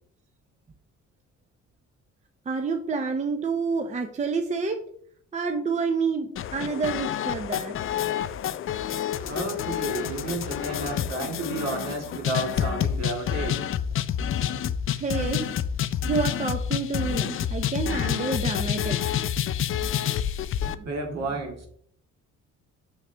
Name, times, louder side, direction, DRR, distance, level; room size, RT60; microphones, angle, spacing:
voice 1, 2.5-4.8 5.3-7.7 14.9-15.5 16.0-19.1 20.6-21.2, right 4 dB, 25° right, 6 dB, 0.6 m, -29 dB
sound 1, 6.4-20.8, left 9 dB, 45° left, 0.4 m, -28 dB
voice 2, 9.3-13.6 20.8-21.7, right 2 dB, 60° right, 2 dB, 2.1 m, -31 dB
6.3 x 6.2 x 3.4 m, 0.62 s
cardioid pair, 120°, 30 cm